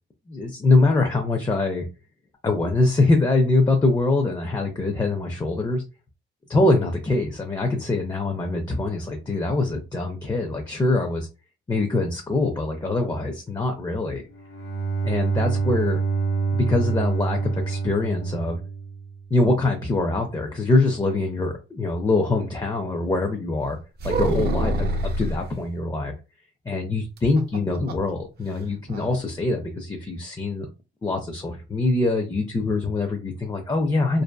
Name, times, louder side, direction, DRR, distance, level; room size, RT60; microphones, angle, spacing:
voice 1, 0.3-1.9 2.4-5.8 6.5-11.3 11.7-14.2 15.0-16.0 16.5-18.6 19.3-23.8 24.0-24.9 25.2-26.1 26.7-30.7 31.0-34.2, left 2 dB, 20° left, 3 dB, 0.5 m, -23 dB
Bowed string instrument, 14.3-19.3, right 5 dB, 85° left, 0.8 m, -26 dB
sound 1, 24.0-25.4 27.2-28.1 28.4-28.5 28.9-29.2, right 1 dB, 55° right, 0.7 m, -25 dB
2.6 x 2.4 x 2.3 m, 0.30 s
cardioid pair, 90°, 20 cm